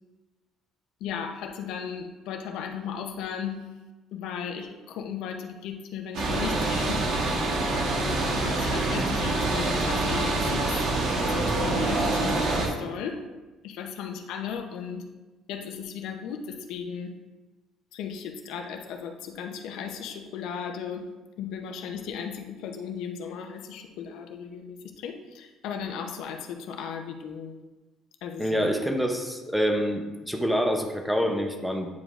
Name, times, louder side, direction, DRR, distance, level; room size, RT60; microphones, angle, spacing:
voice 1, 1.0-3.6 4.1-7.0 7.9-10.9 11.2-13.2 13.6-15.1 15.5-17.1 17.9-21.1 21.4-27.6 28.2-28.7, left 7 dB, 75° left, 4 dB, 0.7 m, -36 dB
sound 1, 6.1-12.7, right 2 dB, 70° right, 1.3 m, -26 dB
voice 2, 28.4-31.9, equal, ahead, 3 dB, 0.6 m, -26 dB
9.3 x 5.1 x 2.4 m, 1.2 s
cardioid pair, 160°, 0 cm